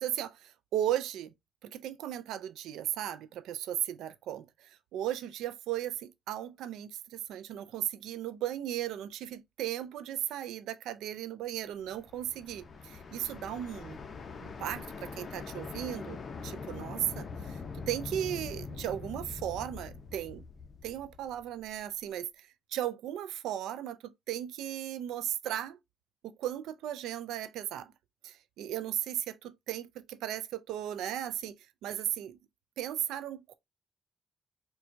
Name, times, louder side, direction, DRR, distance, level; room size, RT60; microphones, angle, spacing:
voice 1, 0.0-1.3 1.6-14.0 14.4-16.2 16.4-20.4 20.8-25.8 26.2-27.9 28.2-31.5 31.8-32.4 32.8-33.5, right 11 dB, 85° right, 0.3 m, -36 dB
sound 1, 11.8-21.8, left 4 dB, 45° left, 0.6 m, -43 dB
4.4 x 2.2 x 2.5 m
cardioid pair, 90°, 0 cm